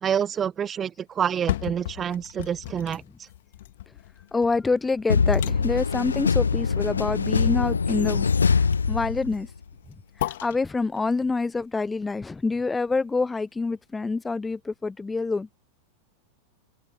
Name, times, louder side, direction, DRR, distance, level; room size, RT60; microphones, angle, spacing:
voice 1, 0.0-3.3, right 8 dB, 25° right, 0.9 m, -28 dB
sound 1, 1.2-13.2 13.7-13.8, left 14 dB, 55° left, 2.9 m, -38 dB
voice 2, 4.3-9.5 10.2-15.5, left 3 dB, 10° left, 0.3 m, -27 dB
sound 2, 5.1-9.6, left 5 dB, 75° left, 0.5 m, -23 dB
figure-of-eight pair, 90°, 0 cm